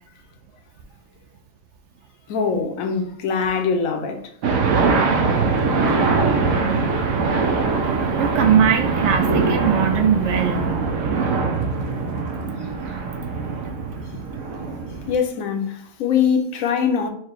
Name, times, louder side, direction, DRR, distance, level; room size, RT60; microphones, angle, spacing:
voice 1, 2.3-4.2 15.1-17.1, left 6 dB, 80° left, 1.1 m, -22 dB
sound 1, 4.4-15.2, right 4 dB, 85° right, 1.1 m, -22 dB
voice 2, 7.9-10.7, right 8 dB, 65° right, 0.8 m, -20 dB
4.6 x 2.2 x 4.4 m
omnidirectional pair, 1.4 m